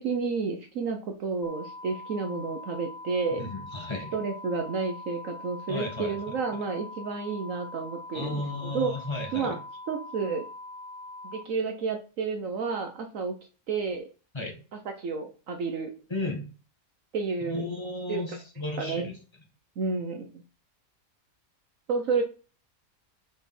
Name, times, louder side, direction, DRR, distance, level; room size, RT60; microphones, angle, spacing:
voice 1, 0.0-3.4 4.1-8.9 9.3-9.6 9.9-10.4 11.2-13.3 13.7-14.1 14.7-15.9 17.1-17.6 18.1-18.4 18.8-19.1 19.8-20.3 21.9-22.2, right 4 dB, 65° right, 5 dB, 1.2 m, -31 dB
sound 1, 1.4-11.4, left 2 dB, 40° left, 0.9 m, -43 dB
voice 2, 3.4-4.1 5.7-6.1 8.1-9.5 14.3-14.6 16.1-16.4 17.4-19.1, left 2 dB, 20° left, 2 dB, 1.6 m, -34 dB
6.4 x 5.1 x 4.3 m, 0.35 s
omnidirectional pair, 1.5 m